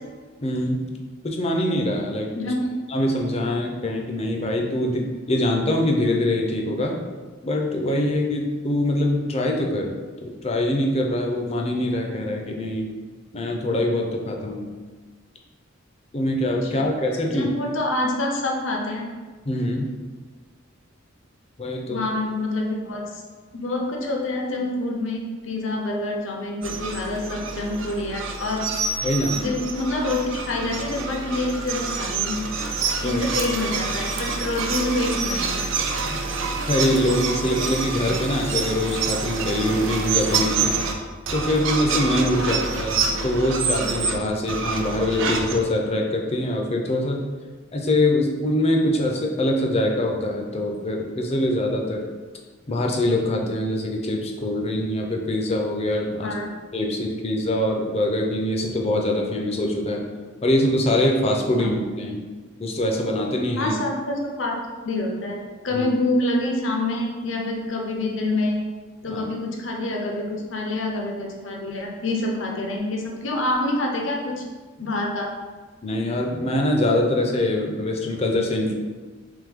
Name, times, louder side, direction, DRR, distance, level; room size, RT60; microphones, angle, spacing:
voice 1, 0.4-0.9 1.2-2.5 2.9-7.0 7.4-12.9 13.3-14.7 16.1-17.5 19.4-19.9 21.6-22.0 29.0-29.4 33.0-33.2 36.1-36.2 36.7-40.8 41.3-47.2 47.7-52.0 52.7-56.3 56.7-60.0 60.4-62.2 62.6-63.7 65.7-65.9 69.1-69.3 75.8-78.7, left 1 dB, 30° left, 1 dB, 0.5 m, -24 dB
voice 2, 2.3-2.7 16.6-16.8 17.3-19.1 21.9-23.2 23.5-28.6 29.3-30.2 30.5-32.4 33.0-35.7 42.3-42.5 56.2-56.5 61.6-61.7 63.5-68.6 69.0-74.4 74.8-75.3, left 2 dB, 70° left, 0 dB, 0.7 m, -27 dB
sound 1, 26.6-40.9 41.3-44.1 44.5-45.6, right 4 dB, 70° right, 0.5 m, -27 dB
3.5 x 3.1 x 3.5 m, 1.4 s
head